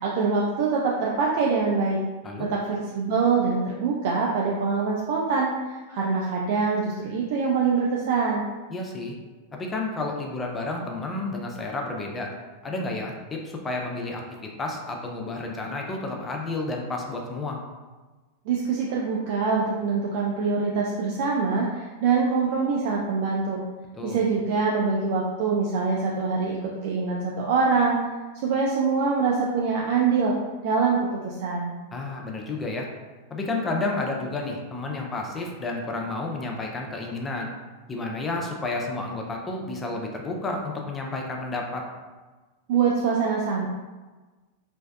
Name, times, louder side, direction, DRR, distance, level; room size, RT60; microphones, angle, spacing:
voice 1, 0.0-2.0 2.4-8.4 18.5-23.6 24.0-28.0 28.4-30.3 30.6-31.7 42.7-43.7, right 5 dB, 60° right, -3 dB, 0.3 m, -24 dB
voice 2, 8.7-9.2 9.5-12.3 12.6-17.6 23.9-24.2 31.9-32.9 33.3-37.5 37.9-41.8, left 2 dB, 20° left, 0 dB, 0.4 m, -31 dB
2.5 x 2.2 x 2.3 m, 1.3 s
hypercardioid pair, 110°, 0 cm